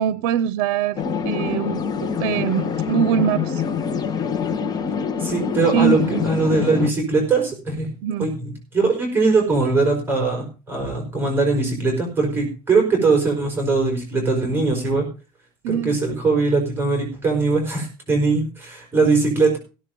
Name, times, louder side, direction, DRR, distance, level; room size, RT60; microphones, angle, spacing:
voice 1, 0.0-3.6 5.7-6.2 8.0-8.3 15.6-16.0, right 9 dB, 90° right, 0.6 m, -23 dB
sound 1, 1.0-6.9, left 6 dB, 30° left, 1.4 m, -25 dB
voice 2, 5.2-7.9 8.2-15.1 15.7-19.6, right 3 dB, 15° right, 4.9 m, -21 dB
16.5 x 7.1 x 5.3 m
cardioid pair, 140°, 12 cm